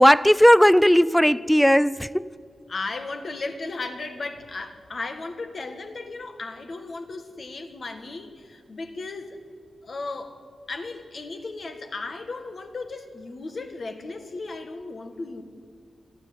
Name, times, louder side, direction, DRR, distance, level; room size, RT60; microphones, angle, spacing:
voice 1, 0.0-2.3, equal, 5° left, 19 dB, 0.5 m, -16 dB
voice 2, 2.7-9.4 9.8-10.4 10.7-15.4, left 3 dB, 50° left, 7 dB, 1.9 m, -35 dB
27.5 x 13.0 x 9.7 m, 2.2 s
wide cardioid pair, 125°, 0 cm